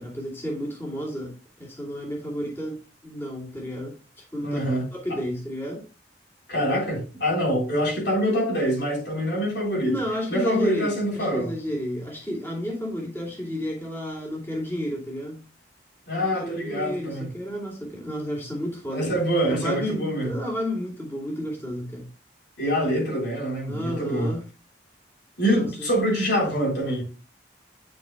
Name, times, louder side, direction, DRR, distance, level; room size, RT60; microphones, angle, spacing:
voice 1, 0.0-4.0 4.3-4.6 4.9-5.8 9.9-15.4 16.3-19.2 19.5-22.1 23.7-24.5 25.6-25.9, equal, 15° left, 2.6 m, -31 dB
voice 2, 4.4-5.2 6.5-9.9 10.3-11.5 16.1-17.3 18.9-20.3 22.6-24.3 25.4-27.0, equal, 70° left, 3.9 m, -25 dB
9.6 x 6.3 x 2.3 m
head